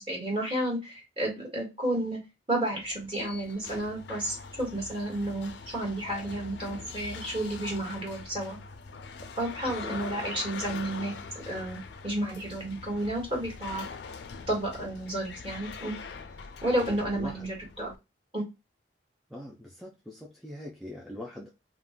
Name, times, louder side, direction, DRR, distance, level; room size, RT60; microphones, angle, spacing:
voice 1, 0.0-2.2 2.5-8.6 9.4-11.1 11.5-13.8 14.5-16.0 16.6-17.9 18.3-18.4, right 1 dB, 30° right, -2 dB, 1.3 m, -31 dB
sound 1, 2.8-18.0, left 5 dB, 70° left, 0.4 m, -43 dB
voice 2, 9.7-10.0 17.1-17.5 19.3-21.5, left 1 dB, ahead, -3 dB, 0.3 m, -42 dB
2.4 x 2.1 x 3.5 m, 0.24 s
head